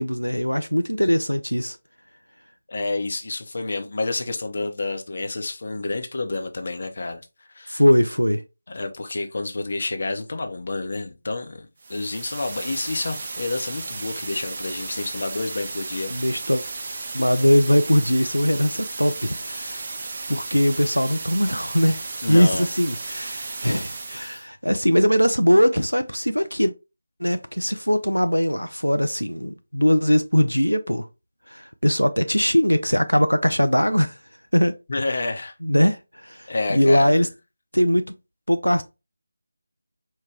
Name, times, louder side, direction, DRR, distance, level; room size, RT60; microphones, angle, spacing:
voice 1, 0.0-1.8 7.7-8.4 16.1-16.6 17.1-19.9 20.3-22.0 22.3-26.7 27.2-31.1 31.5-34.2 34.5-35.2 35.6-37.3 37.7-38.1 38.5-38.8, equal, 90° left, 0.4 m, -21 dB
voice 2, 2.7-7.2 7.5-7.8 8.7-16.1 22.2-22.7 34.9-35.5 36.5-37.3, left 3 dB, 45° left, 0.7 m, -29 dB
sound 1, 11.8-24.5, right 3 dB, 35° right, 0.5 m, -34 dB
4.7 x 2.2 x 3.5 m
figure-of-eight pair, 160°, 0 cm